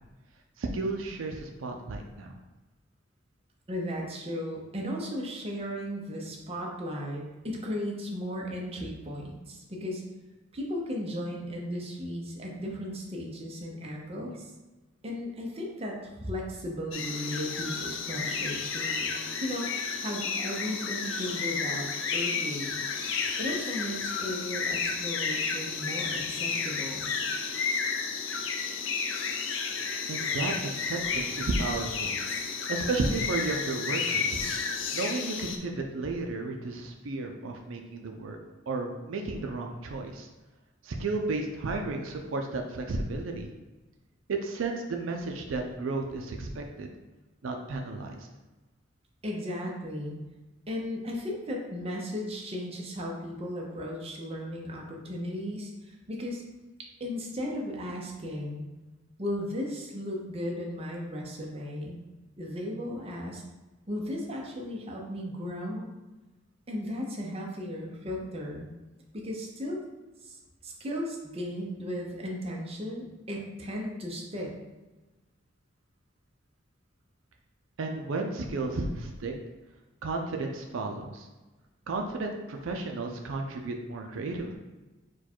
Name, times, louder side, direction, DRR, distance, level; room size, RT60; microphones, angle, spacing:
voice 1, 0.6-2.3 30.1-32.2 32.7-34.4 34.9-38.4 38.7-40.3 40.8-43.5 44.3-46.9 47.4-48.3 77.8-79.3 80.0-81.3 81.9-84.5, right 3 dB, 80° right, 3 dB, 0.5 m, -33 dB
voice 2, 3.7-10.0 10.5-14.5 15.0-19.1 19.4-21.9 22.1-22.8 23.4-27.1 49.2-50.2 50.7-56.4 57.0-58.6 59.2-62.0 62.4-63.4 63.9-65.9 66.7-68.7 69.1-69.8 70.2-70.4 70.6-74.5, equal, 30° right, -1 dB, 0.7 m, -35 dB
sound 1, 16.9-35.6, left 5 dB, 75° left, 0.5 m, -32 dB
4.5 x 2.3 x 4.4 m, 1.2 s
head